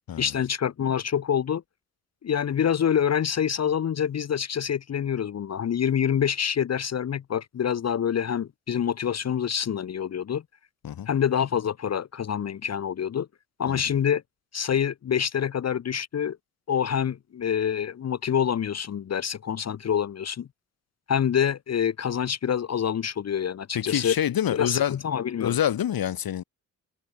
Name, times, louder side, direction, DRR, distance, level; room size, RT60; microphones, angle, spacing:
voice 1, 0.2-1.6 2.2-10.4 11.1-13.3 13.6-14.2 14.5-16.4 16.7-20.5 21.1-24.1 24.5-25.6, left 8 dB, 40° left, 0.9 m, -26 dB
voice 2, 23.7-25.0 25.4-26.4, left 10 dB, 65° left, 2.9 m, -26 dB
hypercardioid pair, 40°, 38 cm